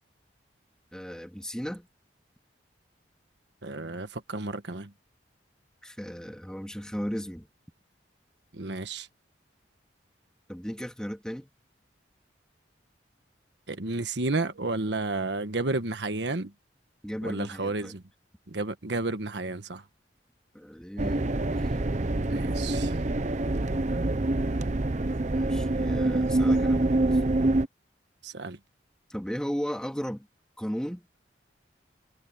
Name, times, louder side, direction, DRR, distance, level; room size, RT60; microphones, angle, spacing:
voice 1, 0.9-1.9 5.8-7.5 10.5-11.5 17.0-17.9 20.5-21.3 21.5-21.7 25.3-27.2 29.1-30.3 30.6-31.2, equal, 5° left, 2.3 m, -36 dB
voice 2, 3.6-4.9 8.5-9.1 13.7-16.5 17.2-18.0 18.5-19.8 22.3-23.0 28.2-28.6, right 2 dB, 75° right, 1.4 m, -31 dB
sound 1, 21.0-27.7, right 2 dB, 40° right, 0.8 m, -26 dB
head